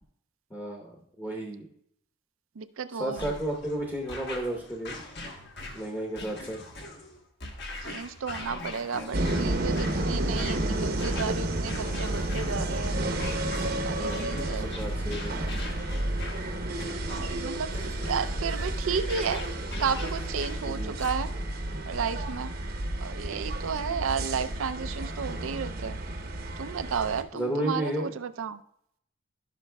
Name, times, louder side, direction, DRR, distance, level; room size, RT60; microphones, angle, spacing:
voice 1, 0.5-1.7 3.0-5.0 5.7-6.6 14.0-15.4 20.6-20.9 21.7-21.8 27.3-28.1, right 1 dB, 15° left, -1 dB, 0.9 m, -33 dB
voice 2, 2.6-3.3 7.9-13.0 13.8-14.7 17.1-17.7 18.0-19.5 19.8-21.3 21.9-22.5 23.0-26.0 26.6-28.6, right 6 dB, 85° right, 12 dB, 0.5 m, -32 dB
sound 1, 3.1-21.5, left 2 dB, 55° left, 1.2 m, -41 dB
sound 2, 9.1-27.2, right 1 dB, 50° right, 0.8 m, -31 dB
15.5 x 5.8 x 2.3 m, 0.72 s
head